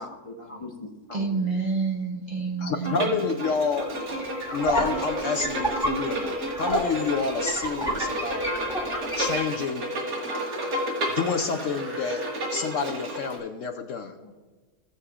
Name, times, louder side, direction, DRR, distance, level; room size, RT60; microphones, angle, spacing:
voice 1, 0.0-1.5 14.2-14.4, left 2 dB, 25° left, 3 dB, 0.8 m, -40 dB
voice 2, 1.1-3.1, right 4 dB, 40° right, 0 dB, 0.7 m, -28 dB
voice 3, 2.6-3.9 4.5-8.5 9.1-9.9 11.1-12.2 12.5-14.2, left 5 dB, 65° left, 5 dB, 0.9 m, -28 dB
Bowed string instrument, 2.8-13.4, right 1 dB, 85° right, 2.4 m, -31 dB
sound 1, 3.5-9.5, right 1 dB, ahead, 1.6 m, -31 dB
sound 2, 4.8-5.3 6.8-7.4 8.6-9.3 10.1-12.5, right 2 dB, 55° right, 2.4 m, -45 dB
17.0 x 7.8 x 2.4 m, 1.3 s
omnidirectional pair, 1.7 m